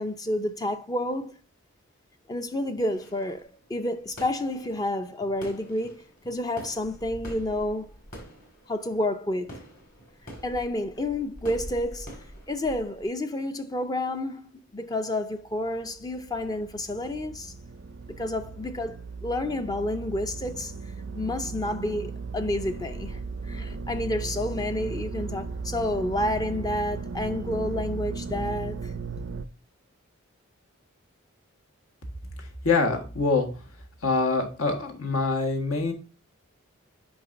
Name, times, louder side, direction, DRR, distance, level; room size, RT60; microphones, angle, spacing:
voice 1, 0.0-1.3 2.3-7.9 8.7-9.6 10.4-12.1 12.5-17.5 18.2-20.7 21.1-23.2 23.5-28.9, left 1 dB, 15° left, 0.4 m, -30 dB
sound 1, 2.9-13.1, equal, 40° left, 1.9 m, -45 dB
sound 2, 15.7-29.5, right 4 dB, 50° right, 0.4 m, -36 dB
voice 2, 32.4-33.5 34.0-35.9, left 3 dB, 80° left, 1.5 m, -25 dB
7.9 x 5.1 x 2.6 m
head